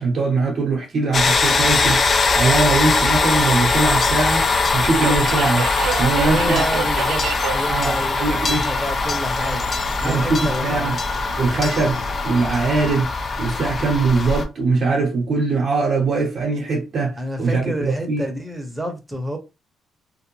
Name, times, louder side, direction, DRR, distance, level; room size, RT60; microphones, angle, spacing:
voice 1, 0.0-4.5 4.7-5.7 6.0-6.6 7.7-8.7 10.0-11.0 11.4-13.1 13.4-18.2, right 3 dB, 55° right, 0.7 m, -21 dB
sound 1, 1.1-14.5, left 3 dB, 45° left, 0.5 m, -21 dB
Subway metro underground, 1.5-13.0, right 7 dB, 90° right, 0.4 m, -33 dB
voice 2, 6.1-7.3 7.5-9.7 10.0-11.0 17.2-19.4, right 1 dB, 10° right, 0.9 m, -29 dB
2.5 x 2.1 x 2.9 m
cardioid pair, 90°, 0 cm